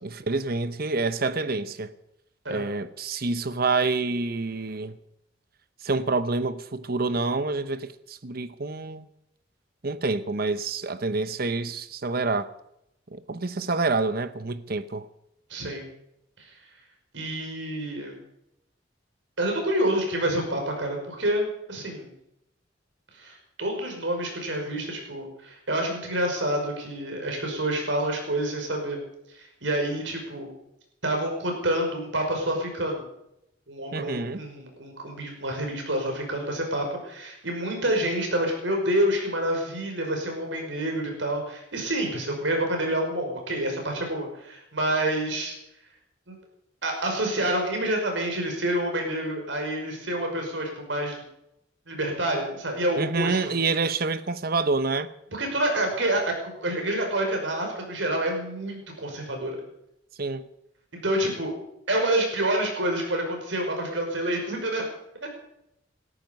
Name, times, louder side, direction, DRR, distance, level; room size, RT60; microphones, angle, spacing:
voice 1, 0.0-1.9 2.5-5.0 5.8-9.1 9.8-12.5 13.1-15.1 33.9-34.4 53.0-55.1 60.2-60.4, right 3 dB, 55° right, 0.9 m, -27 dB
voice 2, 15.5-15.8 16.4-16.5 17.1-18.2 19.4-22.1 23.2-29.0 29.3-30.5 31.0-33.1 33.7-45.5 46.3-46.4 46.8-51.2 51.9-53.5 55.3-59.6 61.0-61.5 61.9-64.9 65.2-65.3, right 1 dB, 80° right, 5.6 m, -28 dB
19.0 x 13.5 x 5.4 m
head